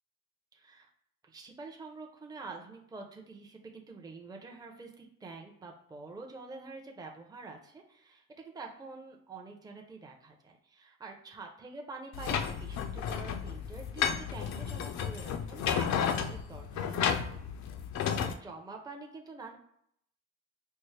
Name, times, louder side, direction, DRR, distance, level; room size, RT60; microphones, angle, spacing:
voice 1, 0.5-0.9 1.2-17.2 18.1-19.6, right 3 dB, 15° right, 1 dB, 0.6 m, -47 dB
sound 1, 12.1-18.3, left 7 dB, 65° left, 0.5 m, -32 dB
4.4 x 2.0 x 3.2 m, 0.70 s
cardioid pair, 90°, 30 cm